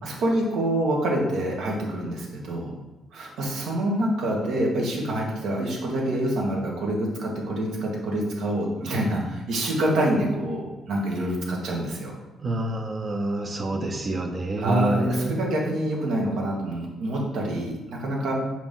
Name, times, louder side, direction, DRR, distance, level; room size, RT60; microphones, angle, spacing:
voice 1, 0.0-2.8 3.1-12.1 14.6-18.3, right 1 dB, 80° right, -2 dB, 1.7 m, -26 dB
voice 2, 12.4-15.3, right 1 dB, 35° right, 3 dB, 0.8 m, -27 dB
5.9 x 4.7 x 3.7 m, 1.1 s
cardioid pair, 90°, 0 cm